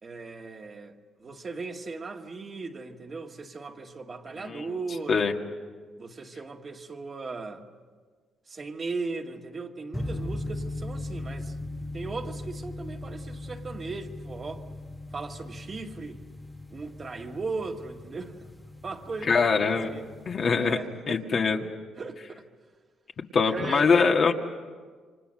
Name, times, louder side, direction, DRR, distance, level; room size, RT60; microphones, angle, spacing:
voice 1, 0.0-5.3 6.0-7.6 8.5-11.6 11.9-14.7 15.1-16.2 16.7-18.5 18.8-20.0 20.6-21.4 22.0-22.5 23.5-24.1, right 3 dB, 40° right, 2.0 m, -37 dB
sound 1, 9.9-20.7, left 2 dB, 10° left, 1.4 m, -39 dB
voice 2, 19.3-19.9 20.3-20.8 21.1-21.7 23.3-24.3, left 5 dB, 50° left, 2.0 m, -23 dB
28.5 x 25.0 x 6.6 m
cardioid pair, 90°, 0 cm